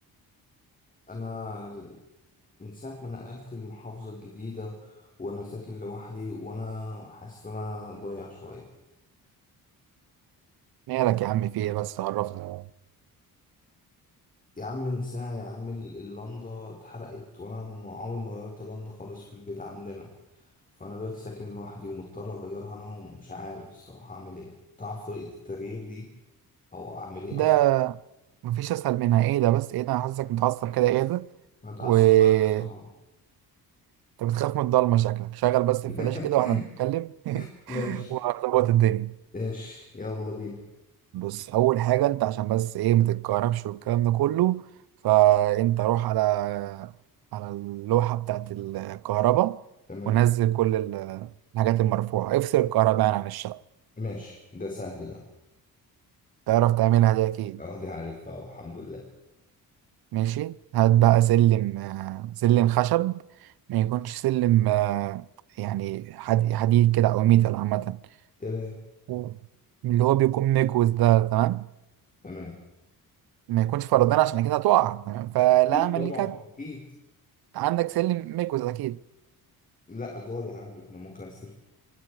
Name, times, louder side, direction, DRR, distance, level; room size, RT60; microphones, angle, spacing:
voice 1, 1.1-2.0 2.6-8.7 14.5-20.5 20.7-24.5 24.8-26.1 26.7-27.5 31.6-32.9 35.9-36.7 37.3-38.1 39.3-40.6 49.9-50.2 54.0-55.2 57.6-59.0 68.4-68.8 72.2-72.6 75.7-76.9 79.9-81.5, left 2 dB, 20° left, 4.6 m, -37 dB
voice 2, 10.9-12.6 27.3-28.0 28.4-31.3 31.8-32.7 34.2-37.4 37.7-39.1 41.1-44.6 45.0-46.9 47.3-49.6 50.1-53.6 56.5-57.6 60.1-63.2 63.7-65.2 65.6-68.0 69.1-69.4 69.8-71.7 73.5-76.3 77.5-79.0, right 14 dB, 80° right, 0.8 m, -23 dB
26.5 x 24.0 x 4.8 m
cardioid pair, 120°, 37 cm